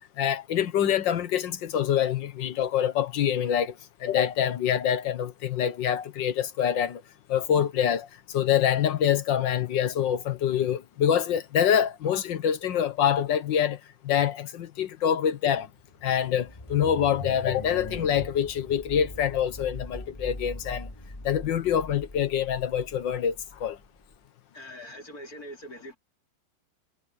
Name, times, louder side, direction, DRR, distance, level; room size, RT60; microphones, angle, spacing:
voice 1, 0.2-7.0 7.3-15.7 16.0-20.9 21.2-23.8, left 9 dB, 80° left, 1.8 m, -25 dB
sound 1, 15.8-24.1, left 1 dB, 15° left, 2.2 m, -41 dB
voice 2, 24.5-26.0, equal, 50° left, 3.9 m, -42 dB
omnidirectional pair, 2.0 m